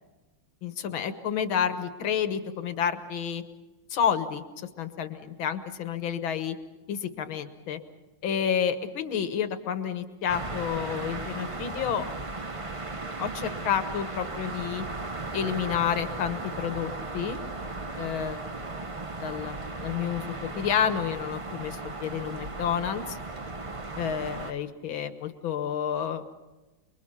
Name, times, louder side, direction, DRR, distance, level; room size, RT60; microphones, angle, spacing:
voice 1, 0.6-3.4 3.9-6.6 6.9-7.8 8.2-12.1 13.2-14.8 15.3-17.4 18.0-18.4 19.2-19.6 19.8-23.2 24.0-26.3, left 8 dB, 80° left, 9 dB, 2.1 m, -30 dB
sound 1, 10.3-24.5, right 3 dB, 30° right, 0.6 m, -36 dB
29.5 x 22.0 x 5.7 m, 1.1 s
omnidirectional pair, 2.2 m